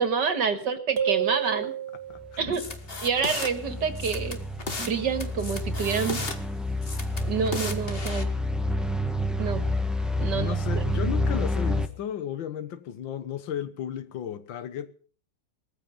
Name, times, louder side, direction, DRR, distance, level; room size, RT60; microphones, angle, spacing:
voice 1, 0.0-1.7 2.4-2.7 3.0-4.4 4.8-6.2 7.2-8.3 9.4-9.7 10.2-10.5, right 6 dB, 65° right, 2.3 m, -27 dB
sound 1, 1.0-2.4, right 9 dB, 40° right, 1.1 m, -29 dB
voice 2, 2.1-2.6 10.3-14.9, left 9 dB, 80° left, 1.9 m, -34 dB
sound 2, 2.2-11.9, left 1 dB, ahead, 0.8 m, -29 dB
sound 3, 2.5-3.5 4.0-4.9 5.2-6.4 6.8-8.2, left 4 dB, 35° left, 1.6 m, -35 dB
19.0 x 14.5 x 5.2 m
omnidirectional pair, 2.1 m